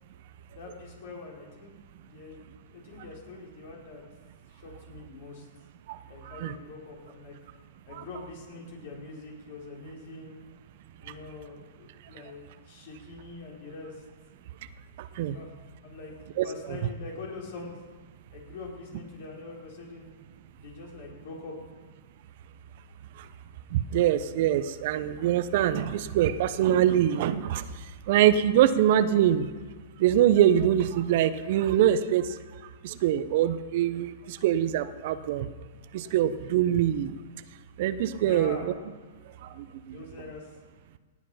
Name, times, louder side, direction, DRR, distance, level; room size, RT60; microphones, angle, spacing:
voice 1, 0.5-2.4 2.7-4.0 4.5-5.5 6.1-7.3 7.9-10.5 11.0-14.0 15.3-15.5 15.8-16.1 16.4-17.8 18.3-20.1 20.4-21.7 38.2-38.7 39.8-40.5, left 3 dB, 60° left, -2 dB, 4.4 m, -43 dB
voice 2, 15.0-15.4 16.4-16.8 23.7-27.6 28.1-29.5 30.0-32.3 32.8-35.5 35.9-37.1 37.8-38.7 39.6-40.0, right 11 dB, 55° right, 13 dB, 0.8 m, -24 dB
17.5 x 8.3 x 5.6 m, 1.5 s
hypercardioid pair, 110°, 0 cm